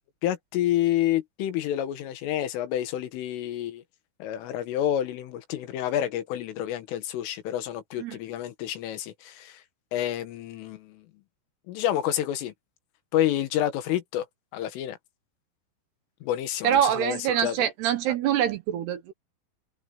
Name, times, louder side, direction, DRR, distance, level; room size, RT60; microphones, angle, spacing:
voice 1, 0.2-3.8 4.2-9.6 9.9-11.1 11.7-12.5 13.1-14.3 14.5-15.0 16.2-17.6, left 12 dB, 90° left, 4.2 m, -29 dB
voice 2, 16.6-19.1, right 10 dB, 70° right, 2.9 m, -25 dB
omnidirectional pair, 5.6 m